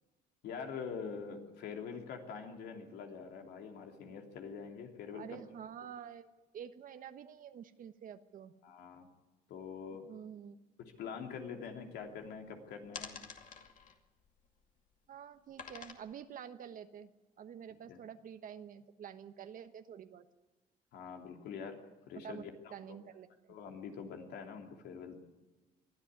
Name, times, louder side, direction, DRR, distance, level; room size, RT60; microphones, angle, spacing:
voice 1, 0.4-5.4 8.6-9.1 9.5-10.0 10.8-13.2 17.9-18.0 20.9-21.8 22.1-22.7 23.5-25.1, left 6 dB, 75° left, 3 dB, 3.1 m, -45 dB
voice 2, 5.1-6.3 6.5-8.5 10.0-10.6 15.1-17.1 17.4-20.2 22.2-22.4 22.7-23.6, right 8 dB, 55° right, 9 dB, 1.2 m, -48 dB
sound 1, 10.9-11.0 11.3-12.4 12.8-14.9 15.5-15.9, left 6 dB, 50° left, 2.4 m, -49 dB
22.0 x 13.0 x 9.6 m, 1.1 s
cardioid pair, 110°, 17 cm